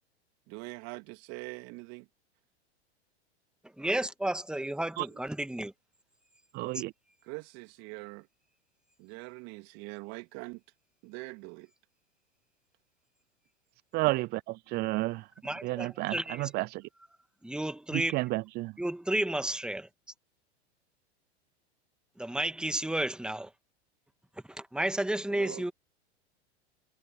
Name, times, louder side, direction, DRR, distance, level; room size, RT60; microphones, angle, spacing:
voice 1, 0.5-2.1 7.2-8.3 9.0-10.6 11.0-11.7 25.3-25.7, right 27 dB, 50° right, 2.8 m, -43 dB
voice 2, 3.6-5.7 6.7-6.8 15.4-16.5 17.4-18.2 18.8-19.9 22.2-23.5 24.5-25.7, right 1 dB, ahead, 2.2 m, -32 dB
voice 3, 6.5-6.9 13.9-14.3 14.7-15.2 15.6-16.1 16.5-16.8 18.1-18.7, right 21 dB, 30° right, 0.4 m, -30 dB
hypercardioid pair, 100°, 34 cm